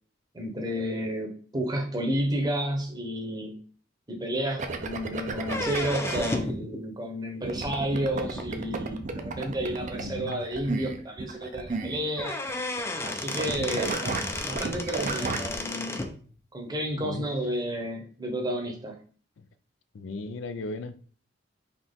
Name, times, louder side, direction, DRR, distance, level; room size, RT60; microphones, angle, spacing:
voice 1, 0.3-3.6 4.1-12.4 13.0-14.1 14.4-16.1 16.5-19.0, equal, 20° right, 0.8 m, -31 dB
sound 1, 4.6-6.2 7.4-13.1 13.4-15.5, right 3 dB, 40° right, 0.5 m, -33 dB
sound 2, 5.4-6.6 8.4-8.5 9.4-9.5 9.9-10.0 10.3-10.4 11.8-11.9 12.2-16.1, left 2 dB, 15° left, 0.4 m, -33 dB
voice 2, 10.0-10.4 13.6-13.8 17.0-17.3 19.4-19.5 19.9-21.0, left 3 dB, 80° left, 0.4 m, -36 dB
3.9 x 2.9 x 3.6 m
head